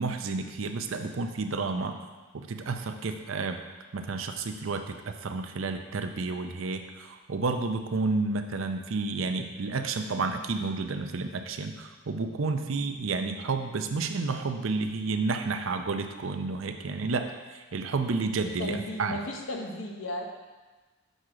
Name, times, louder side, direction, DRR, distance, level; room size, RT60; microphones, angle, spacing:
voice 1, 0.0-2.0 2.3-3.6 3.9-19.2, right 3 dB, 85° right, 6 dB, 0.6 m, -31 dB
voice 2, 18.6-20.3, left 1 dB, 80° left, 2 dB, 0.9 m, -34 dB
6.6 x 6.1 x 3.8 m, 1.3 s
head